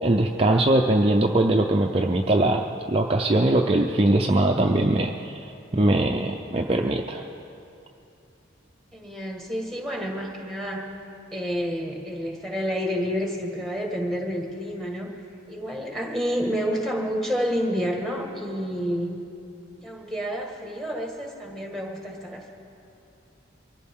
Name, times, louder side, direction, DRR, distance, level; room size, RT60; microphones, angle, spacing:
voice 1, 0.0-5.5 5.7-7.3, right 1 dB, 30° right, 1 dB, 0.5 m, -21 dB
voice 2, 8.9-10.9 11.3-15.1 15.5-19.2 19.8-22.5, equal, ahead, 0 dB, 1.7 m, -29 dB
23.5 x 14.5 x 3.7 m, 2.7 s
head